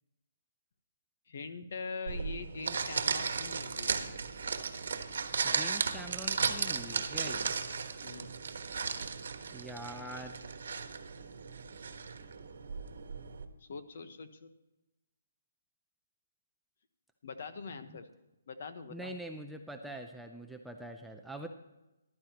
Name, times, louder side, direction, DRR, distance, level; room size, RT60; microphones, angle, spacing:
voice 1, 1.3-4.0 8.0-8.3 13.6-14.5 17.2-18.1 18.5-19.1, left 4 dB, 50° left, 10 dB, 1.1 m, -43 dB
sound 1, 2.1-13.4, right 5 dB, 70° right, 1.3 m, -35 dB
voice 2, 5.4-7.6 9.5-10.4 17.9-18.0 18.9-21.5, right 1 dB, ahead, 3 dB, 0.5 m, -44 dB
14.5 x 12.0 x 2.9 m, 0.96 s
hypercardioid pair, 170°, 0 cm